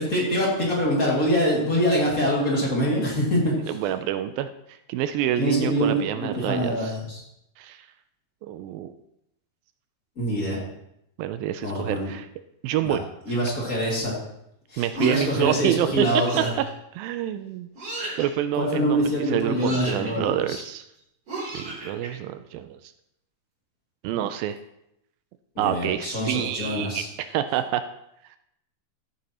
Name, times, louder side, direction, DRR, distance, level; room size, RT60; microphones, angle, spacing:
voice 1, 0.0-3.7 5.4-7.2 10.2-10.6 11.6-12.1 12.8-13.0 13.3-14.1 14.7-16.5 18.5-20.6 25.5-27.1, equal, 25° left, -4 dB, 2.1 m, -24 dB
voice 2, 3.7-6.9 7.6-7.9 8.4-8.9 11.2-12.3 12.6-13.0 14.8-16.1 16.9-17.7 18.2-20.9 21.5-22.9 24.0-24.6 25.6-27.8, right 11 dB, 80° right, 10 dB, 2.1 m, -27 dB
sound 1, 14.9-15.5 16.2-16.7 17.8-18.3 19.5-20.1 21.3-22.1, right 2 dB, 40° right, 4.1 m, -34 dB
14.5 x 9.2 x 2.9 m, 0.80 s
omnidirectional pair, 4.5 m